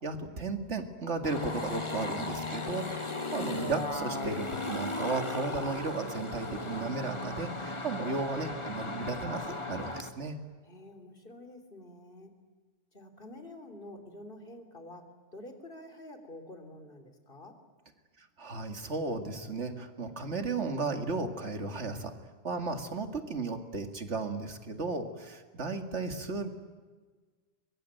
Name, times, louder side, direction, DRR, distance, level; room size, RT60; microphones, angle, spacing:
voice 1, 0.0-10.4 18.2-22.1 22.4-26.5, right 3 dB, 85° right, 7 dB, 2.5 m, -35 dB
sound 1, 1.2-10.1, left 2 dB, 25° left, 1.8 m, -36 dB
voice 2, 10.6-12.3 12.9-17.6, left 1 dB, 50° left, 7 dB, 3.5 m, -48 dB
23.5 x 23.0 x 9.1 m, 1.4 s
omnidirectional pair, 1.2 m